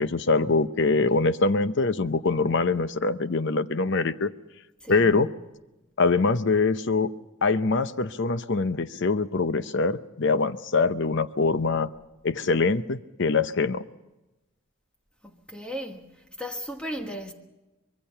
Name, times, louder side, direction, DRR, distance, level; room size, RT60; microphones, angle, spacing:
voice 1, 0.0-4.3 4.9-5.3 6.0-7.1 7.4-11.9 12.2-13.8, left 3 dB, 55° left, 0.7 m, -24 dB
voice 2, 4.8-5.3 15.2-16.1 16.4-17.3, equal, 5° left, 1.4 m, -36 dB
25.0 x 22.0 x 5.6 m
head